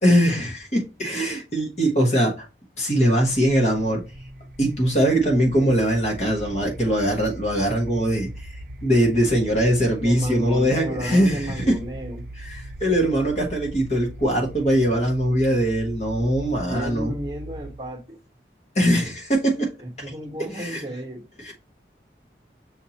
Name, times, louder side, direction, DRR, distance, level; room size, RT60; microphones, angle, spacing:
voice 1, 0.0-2.4 2.8-4.0 4.6-8.3 8.8-11.8 12.4-17.1 18.7-19.7 20.5-20.8 21.4-21.5, equal, 40° left, 1.3 m, -21 dB
sound 1, 3.3-17.9, right 1 dB, 55° right, 0.6 m, -39 dB
voice 2, 9.6-12.3 16.6-18.2 19.8-21.2, right 1 dB, 25° right, 1.2 m, -32 dB
6.3 x 2.8 x 2.9 m
head